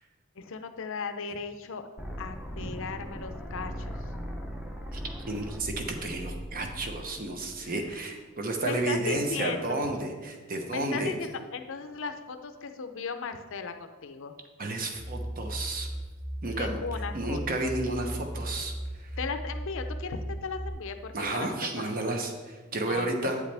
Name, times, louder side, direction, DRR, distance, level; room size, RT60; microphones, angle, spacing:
voice 1, 0.4-1.9 2.2-3.9 7.6-7.8 8.6-9.8 10.7-14.3 16.5-17.6 19.2-22.1 22.9-23.3, left 5 dB, 65° left, 8 dB, 0.6 m, -37 dB
sound 1, 2.0-8.0, equal, 5° right, 0.7 m, -39 dB
voice 2, 5.3-11.1 14.6-15.9 16.4-16.8 17.1-18.7 19.0-19.2 21.1-23.4, right 2 dB, 40° right, 4 dB, 1.0 m, -32 dB
sound 2, 14.9-20.7, right 1 dB, 80° right, 1.6 m, -37 dB
8.8 x 8.2 x 3.4 m, 1.4 s
head